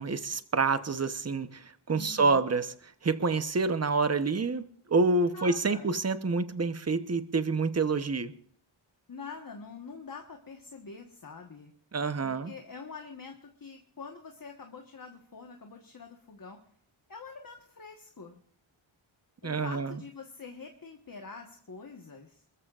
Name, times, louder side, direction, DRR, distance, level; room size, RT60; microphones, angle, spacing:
voice 1, 0.0-2.7 3.0-8.3 11.9-12.5 19.4-19.9, right 4 dB, 30° right, 11 dB, 0.9 m, -27 dB
voice 2, 1.9-2.5 5.2-5.9 9.1-11.7 12.2-16.6 17.1-18.4 19.4-22.4, left 4 dB, 40° left, 3 dB, 1.4 m, -45 dB
27.5 x 14.0 x 2.5 m, 0.63 s
wide cardioid pair, 90°, 50 cm